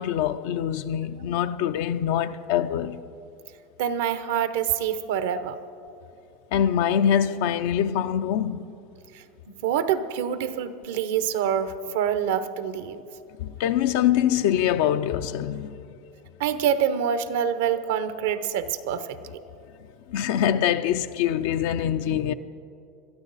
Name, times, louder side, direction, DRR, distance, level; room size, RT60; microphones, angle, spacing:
voice 1, 0.0-3.0 6.5-8.7 13.4-15.8 20.1-22.3, left 10 dB, 75° left, 0.5 m, -24 dB
voice 2, 3.8-5.6 9.1-9.2 9.6-13.0 16.4-19.2, right 8 dB, 80° right, 0.8 m, -26 dB
21.0 x 13.0 x 4.1 m
supercardioid pair, 115°, 0 cm